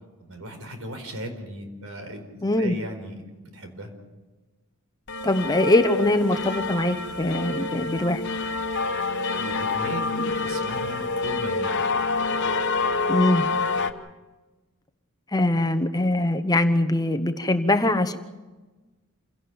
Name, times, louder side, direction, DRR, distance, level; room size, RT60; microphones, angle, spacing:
voice 1, 0.2-2.3 2.6-3.9 9.3-11.8, right 1 dB, 75° right, 5 dB, 4.6 m, -37 dB
voice 2, 2.4-2.7 5.2-8.2 10.2-10.3 13.1-13.5 15.3-18.2, left 1 dB, 15° left, 8 dB, 1.0 m, -22 dB
sound 1, 5.1-13.9, left 3 dB, 55° left, 1.3 m, -27 dB
28.0 x 17.5 x 7.1 m, 1.2 s
head